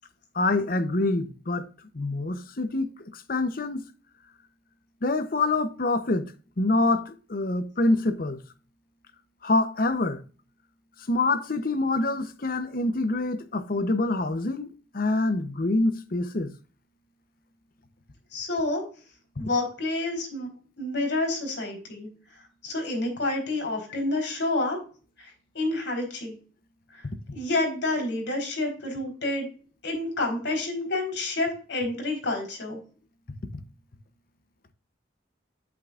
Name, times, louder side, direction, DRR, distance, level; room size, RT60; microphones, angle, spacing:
voice 1, 0.3-1.7 1.9-3.8 5.0-6.3 6.6-8.4 9.4-10.2 11.1-14.7 14.9-16.5 33.5-33.6, left 2 dB, 50° left, 0.8 m, -26 dB
voice 2, 18.3-18.8 19.4-20.5 20.8-22.1 22.6-24.8 25.2-26.3 26.9-27.1 27.3-29.5 29.8-32.8, left 2 dB, 80° left, 4.1 m, -29 dB
8.5 x 8.4 x 2.5 m
head